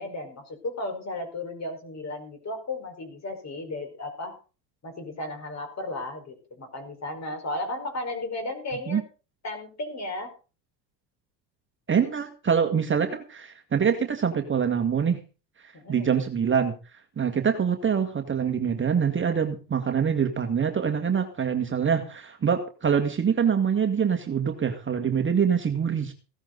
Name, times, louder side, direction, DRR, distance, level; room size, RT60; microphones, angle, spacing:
voice 1, 0.0-4.4 4.8-9.0 9.4-10.3 15.7-16.1 17.2-17.5, left 2 dB, 30° left, 6 dB, 4.8 m, -34 dB
voice 2, 11.9-15.2 15.9-16.7 17.2-26.1, right 7 dB, 25° right, 5 dB, 1.7 m, -25 dB
16.5 x 13.0 x 4.0 m, 0.34 s
hypercardioid pair, 90°, 50 cm